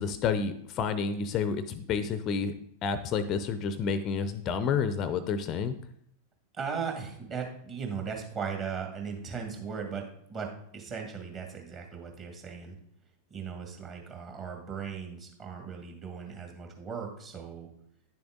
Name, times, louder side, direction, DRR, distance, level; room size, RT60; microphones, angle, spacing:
voice 1, 0.0-2.5 2.8-5.7, left 6 dB, 35° left, 13 dB, 0.6 m, -29 dB
voice 2, 6.5-10.0 10.3-12.8 13.3-17.7, right 6 dB, 30° right, 2 dB, 2.1 m, -37 dB
10.0 x 6.9 x 3.7 m, 0.71 s
figure-of-eight pair, 90°, 0 cm